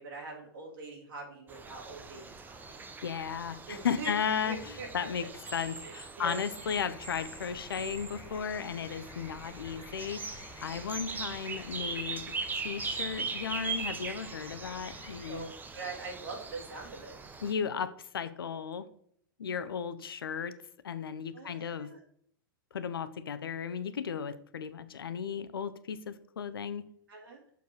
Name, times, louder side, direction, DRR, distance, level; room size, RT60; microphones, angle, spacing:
voice 1, 0.0-2.8 3.7-4.1 4.4-4.9 5.8-6.4 15.2-17.2 21.3-22.0 27.1-27.4, right 3 dB, 70° right, -2 dB, 3.0 m, -43 dB
sound 1, 1.5-17.5, right 4 dB, 15° right, 0.8 m, -41 dB
voice 2, 3.0-5.3 5.5-10.2 10.6-12.2 12.5-15.5 17.4-18.8 19.4-20.5 20.8-21.9 22.7-26.9, left 7 dB, 80° left, 13 dB, 0.6 m, -35 dB
sound 2, 6.6-15.4, left 4 dB, 25° left, 1.1 m, -52 dB
6.7 x 4.7 x 4.7 m, 0.64 s
hypercardioid pair, 100°, 12 cm